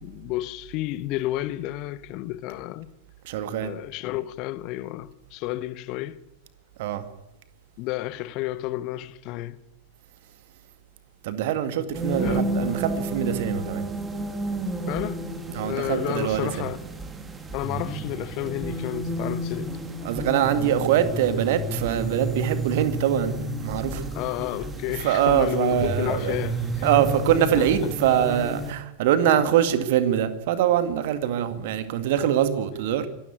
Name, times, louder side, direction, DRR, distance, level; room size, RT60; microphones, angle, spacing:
voice 1, 0.0-2.9 3.6-6.2 7.8-9.6 12.2-12.6 14.9-15.3 15.6-16.8 17.5-19.8 24.1-26.9 27.6-27.9 29.2-29.5, left 16 dB, 40° left, 1.1 m, -31 dB
voice 2, 3.2-3.7 6.8-7.0 11.2-13.9 15.5-16.7 20.0-24.0 25.0-26.4 26.8-33.1, right 10 dB, 50° right, 2.1 m, -23 dB
sound 1, 11.9-28.7, right 1 dB, 15° right, 2.9 m, -31 dB
24.0 x 13.5 x 9.4 m
figure-of-eight pair, 90°, 0 cm